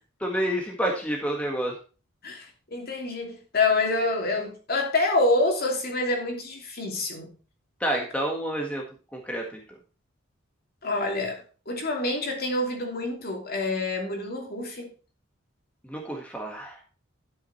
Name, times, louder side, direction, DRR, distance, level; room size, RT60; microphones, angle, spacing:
voice 1, 0.2-1.8 7.8-8.8 9.1-9.8 15.8-16.8, right 1 dB, 5° left, 1.7 m, -29 dB
voice 2, 2.7-7.3 10.8-14.9, left 2 dB, 45° left, 2.9 m, -27 dB
12.0 x 6.5 x 4.2 m
head